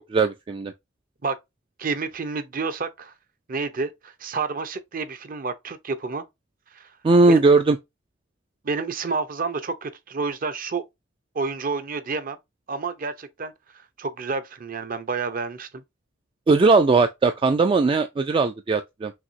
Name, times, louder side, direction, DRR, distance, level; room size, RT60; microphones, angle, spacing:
voice 1, 0.1-0.7 7.0-7.8 16.5-19.1, right 3 dB, 25° right, 0.3 m, -18 dB
voice 2, 1.8-3.1 3.5-6.2 6.7-6.9 7.3-7.4 8.6-10.8 11.3-12.4 12.7-13.5 14.0-15.8, right 4 dB, 45° right, 0.7 m, -29 dB
5.9 x 2.7 x 2.6 m
head